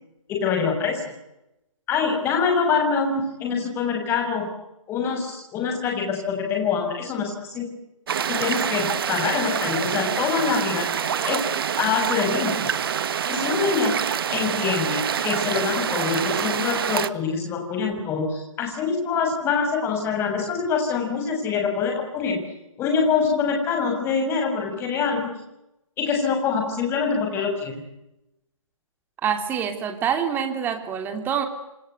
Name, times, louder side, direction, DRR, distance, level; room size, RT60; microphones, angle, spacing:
voice 1, 0.3-1.1 1.9-4.5 4.9-7.7 8.3-10.9 11.2-11.5 11.8-12.8 13.3-14.0 14.3-22.4 22.8-25.3 26.0-27.8, left 5 dB, 15° left, 3 dB, 6.7 m, -25 dB
sound 1, 8.1-17.1, right 8 dB, 45° right, 1.5 m, -26 dB
voice 2, 29.2-31.5, right 8 dB, 10° right, 6 dB, 3.1 m, -26 dB
28.0 x 26.0 x 8.2 m, 0.90 s
figure-of-eight pair, 155°, 17 cm